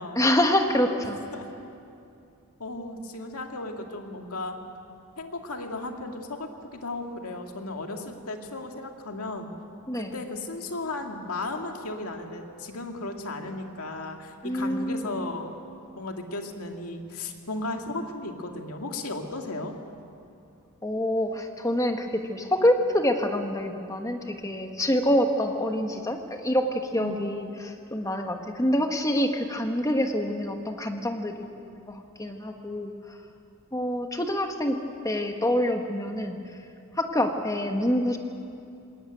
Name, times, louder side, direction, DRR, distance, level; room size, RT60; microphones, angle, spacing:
voice 1, 0.1-1.2 9.9-10.1 14.4-15.2 20.8-32.9 33.7-34.8 35.0-36.4 37.0-38.2, left 1 dB, 15° left, 5 dB, 1.3 m, -26 dB
voice 2, 2.6-4.6 5.2-9.5 9.9-15.5 16.0-19.7 27.0-27.3, left 2 dB, 85° left, 3 dB, 2.1 m, -35 dB
20.5 x 18.0 x 9.1 m, 2.6 s
head